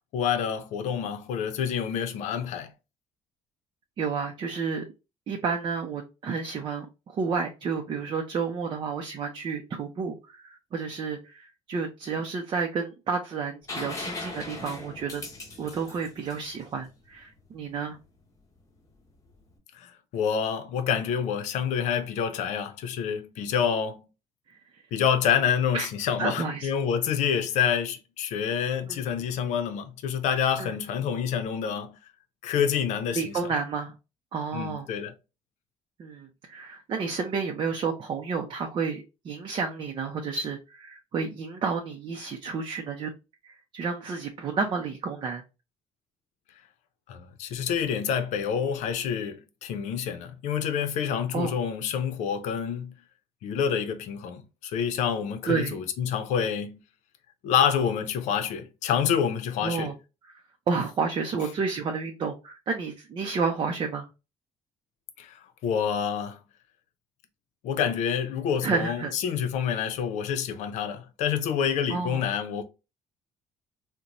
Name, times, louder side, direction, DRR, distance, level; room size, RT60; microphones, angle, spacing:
voice 1, 0.1-2.7 19.7-24.0 24.9-32.0 32.4-33.3 34.5-35.1 47.1-52.9 53.4-56.8 57.4-59.9 65.2-66.4 67.6-72.6, left 8 dB, 75° left, 0.6 m, -27 dB
voice 2, 4.0-4.8 5.3-15.2 15.6-18.0 24.7-24.8 25.7-25.9 26.2-26.7 28.9-29.0 30.6-30.7 33.1-34.0 34.3-34.9 36.0-43.1 43.4-45.4 51.3-51.5 55.5-55.8 59.6-59.9 60.7-64.1 68.6-69.1 71.9-72.2, right 5 dB, 40° right, 0.5 m, -31 dB
sound 1, 13.7-17.4 19.3-19.4, left 2 dB, 25° left, 1.1 m, -39 dB
3.8 x 2.2 x 2.9 m
cardioid pair, 130°, 12 cm